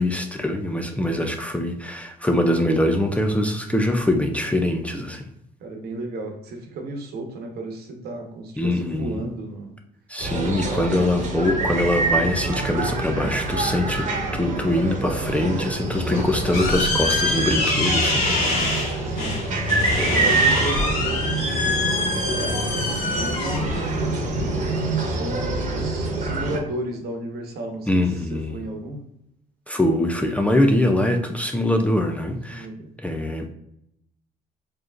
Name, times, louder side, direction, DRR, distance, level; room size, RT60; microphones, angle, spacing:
voice 1, 0.0-5.3 8.6-9.2 10.1-18.4 19.9-20.4 27.9-28.6 29.7-32.7 33.0-33.5, left 1 dB, 10° left, 3 dB, 0.4 m, -23 dB
voice 2, 5.6-9.7 10.4-11.1 19.0-19.4 20.0-22.8 23.1-24.4 25.0-29.0 32.5-32.9, right 2 dB, 70° right, 3 dB, 1.0 m, -34 dB
sound 1, 10.2-26.6, right 2 dB, 45° right, 1.1 m, -26 dB
sound 2, 15.9-25.0, left 2 dB, 55° left, 1.5 m, -26 dB
4.7 x 3.0 x 2.5 m, 0.77 s
cardioid pair, 110°, 17 cm